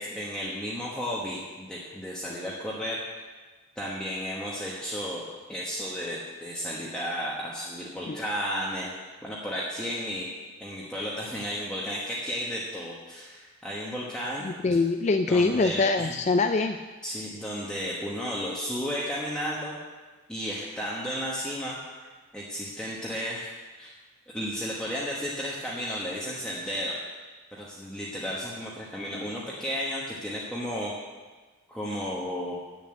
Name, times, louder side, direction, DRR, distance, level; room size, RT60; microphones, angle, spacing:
voice 1, 0.0-3.0 3.8-5.2 5.5-8.9 9.2-10.3 10.6-14.5 15.3-16.1 17.0-19.7 20.3-21.8 22.3-23.5 23.8-23.9 24.3-26.9 27.5-30.9 31.7-32.5, equal, 5° left, -6 dB, 1.2 m, -33 dB
voice 2, 14.4-16.8, left 3 dB, 35° left, 6 dB, 0.3 m, -24 dB
8.4 x 7.1 x 8.8 m, 1.3 s
head